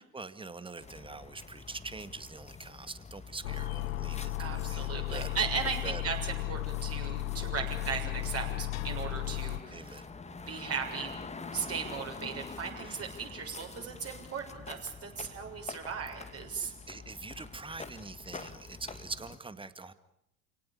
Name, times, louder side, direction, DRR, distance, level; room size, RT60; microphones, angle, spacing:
voice 1, 0.0-5.4 5.8-6.0 9.7-10.1 12.8-13.0 16.6-19.9, right 3 dB, 10° right, 13 dB, 1.9 m, -44 dB
sound 1, 0.8-19.4, left 4 dB, 15° left, 2.0 m, -47 dB
sound 2, 3.4-9.6, left 15 dB, 70° left, 1.3 m, -35 dB
voice 2, 4.4-10.0 10.5-11.2 11.5-16.7, right 6 dB, 35° right, 2 dB, 7.0 m, -37 dB
29.5 x 18.5 x 8.7 m, 0.80 s
figure-of-eight pair, 75°, 42 cm